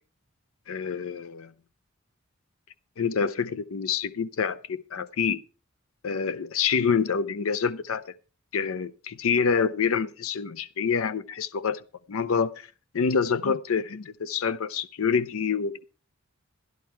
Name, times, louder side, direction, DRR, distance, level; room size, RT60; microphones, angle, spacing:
voice 1, 0.7-1.5 3.0-5.4 6.0-8.1 8.5-11.8 12.1-12.7 12.9-15.8, left 6 dB, 70° left, 0.5 m, -27 dB
12.0 x 11.5 x 4.5 m
head